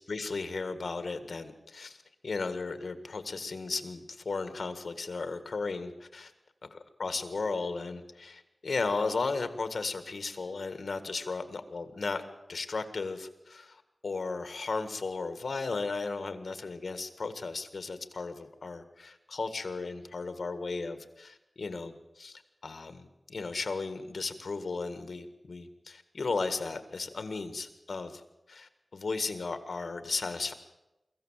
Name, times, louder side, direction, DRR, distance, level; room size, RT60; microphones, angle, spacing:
voice 1, 0.1-6.3 6.7-12.2 12.5-28.2 28.5-30.5, left 4 dB, 80° left, 10 dB, 1.7 m, -35 dB
23.5 x 15.0 x 7.5 m, 0.96 s
wide cardioid pair, 85°, 0 cm